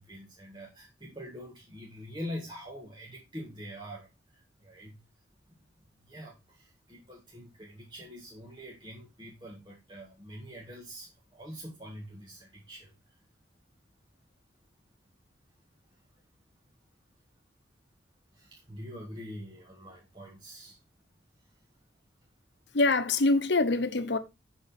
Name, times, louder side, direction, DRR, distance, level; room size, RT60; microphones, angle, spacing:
voice 1, 0.0-5.0 5.5-5.6 5.9-13.2 15.9-16.0 18.3-20.8 21.4-21.6, equal, 25° right, 1.8 m, -45 dB
voice 2, 22.7-24.2, left 3 dB, 75° left, 1.0 m, -24 dB
8.1 x 6.3 x 4.2 m
head